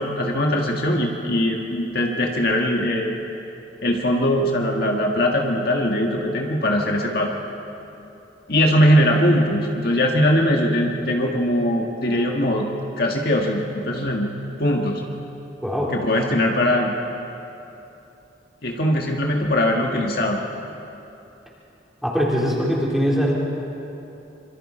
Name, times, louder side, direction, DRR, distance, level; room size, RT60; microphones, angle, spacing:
voice 1, 0.0-3.2 3.8-7.3 8.5-12.7 13.0-14.3 14.6-15.0 15.9-16.9 18.6-20.4, equal, 55° left, 0 dB, 1.7 m, -21 dB
voice 2, 15.6-15.9 22.0-23.3, equal, ahead, -5 dB, 3.8 m, -21 dB
26.0 x 24.5 x 4.4 m, 2.9 s
head